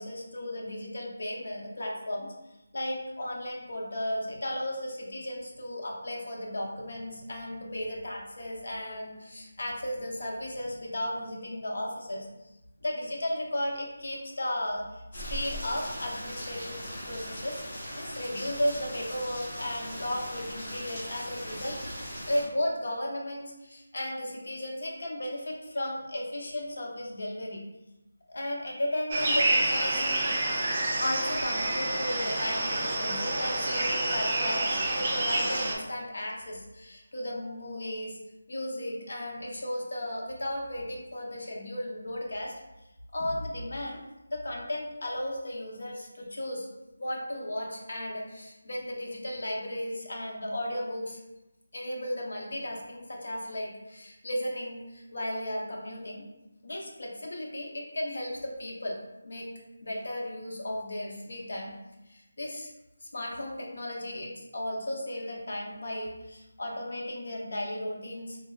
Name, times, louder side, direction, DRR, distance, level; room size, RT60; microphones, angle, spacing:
voice 1, 0.0-2.3 2.7-12.3 12.8-16.8 17.0-21.8 22.3-27.6 28.3-30.3 31.0-38.2 38.5-42.6 43.1-44.0 44.3-46.7 47.0-51.2 51.7-56.2 56.6-59.0 59.2-59.5 59.8-61.7 62.1-62.7 63.0-68.4, left 1 dB, 60° left, -1 dB, 0.6 m, -35 dB
Rain, 15.1-22.4, equal, 25° left, 0.8 m, -39 dB
sound 1, 29.1-35.8, right 2 dB, 25° right, 0.4 m, -28 dB
3.3 x 2.2 x 2.2 m, 0.97 s
figure-of-eight pair, 175°, 0 cm